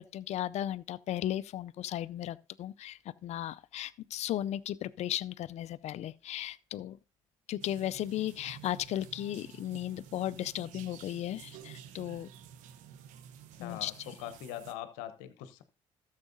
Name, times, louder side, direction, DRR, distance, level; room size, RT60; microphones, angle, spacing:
voice 1, 0.0-7.0 7.5-12.3 13.6-14.1, left 12 dB, 60° left, 0.5 m, -36 dB
sound 1, 7.6-14.7, right 9 dB, 75° right, 0.9 m, -51 dB
voice 2, 13.6-15.6, left 12 dB, 80° left, 0.9 m, -42 dB
13.0 x 7.3 x 2.7 m
hypercardioid pair, 60°, 13 cm